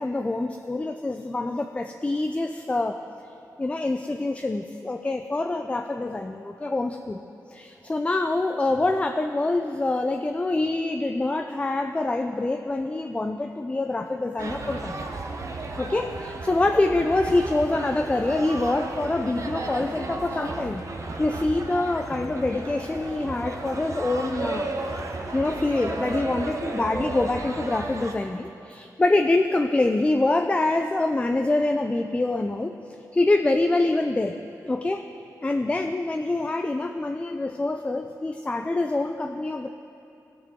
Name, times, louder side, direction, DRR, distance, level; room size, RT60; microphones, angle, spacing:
voice 1, 0.0-3.0 3.6-7.2 7.5-15.0 15.8-20.9 21.2-24.7 25.3-32.7 33.1-34.3 34.6-35.1 35.4-39.7, left 2 dB, 20° left, 6 dB, 0.4 m, -25 dB
sound 1, 14.4-28.1, right 2 dB, 50° right, 0.8 m, -34 dB
16.5 x 6.0 x 3.7 m, 2.7 s
cardioid pair, 80°, 7 cm